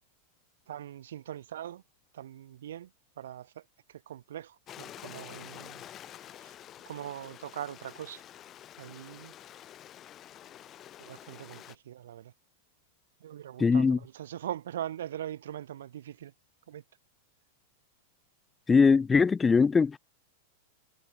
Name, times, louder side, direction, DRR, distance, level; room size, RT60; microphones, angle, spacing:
voice 1, 0.7-1.8 2.1-2.9 3.2-5.9 6.3-6.6 6.9-8.2 8.8-9.3 11.0-12.3 13.2-16.3 16.7-16.8, right 11 dB, 80° right, 2.6 m, -41 dB
Stream, 4.7-11.8, left 11 dB, 30° left, 2.0 m, -48 dB
voice 2, 13.6-14.0 18.7-20.0, left 5 dB, 15° left, 0.6 m, -21 dB
hypercardioid pair, 130°, 0 cm